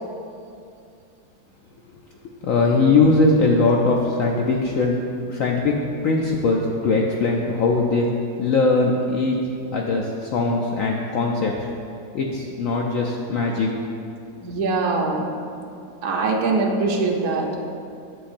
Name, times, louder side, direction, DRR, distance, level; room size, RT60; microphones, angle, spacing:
voice 1, 2.4-5.0 5.3-8.1 8.4-9.5 9.7-11.5 12.1-13.7, left 3 dB, 85° left, 0 dB, 0.7 m, -20 dB
voice 2, 14.4-15.3 16.0-17.6, right 3 dB, 60° right, 0 dB, 1.2 m, -22 dB
10.0 x 7.7 x 2.6 m, 2.5 s
omnidirectional pair, 2.0 m